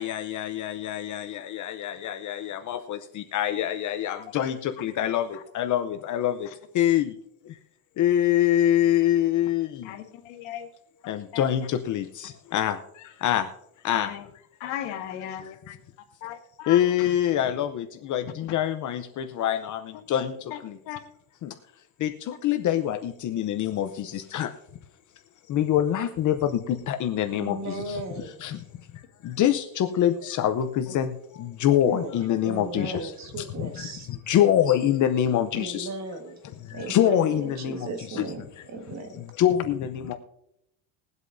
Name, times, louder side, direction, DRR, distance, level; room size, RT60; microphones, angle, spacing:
voice 1, 0.0-6.5 6.7-7.1 7.4-7.6 8.0-9.9 11.1-13.5 13.8-14.1 15.4-15.5 16.7-20.8 21.4-21.5 22.0-24.5 25.5-28.6 28.9-35.9 36.4-38.7 39.1-40.1, left 11 dB, 45° left, 7 dB, 0.7 m, -25 dB
voice 2, 10.3-10.7 11.0-11.4 14.0-14.2 14.6-15.7 16.2-16.8 20.9-21.0 32.8-33.0, left 11 dB, 85° left, 5 dB, 1.8 m, -36 dB
voice 3, 27.3-28.4 31.8-32.1 32.4-34.1 35.5-36.4 36.7-38.5 38.7-39.1, right 3 dB, 40° right, 6 dB, 1.7 m, -36 dB
21.5 x 8.1 x 2.7 m, 0.81 s
cardioid pair, 145°, 43 cm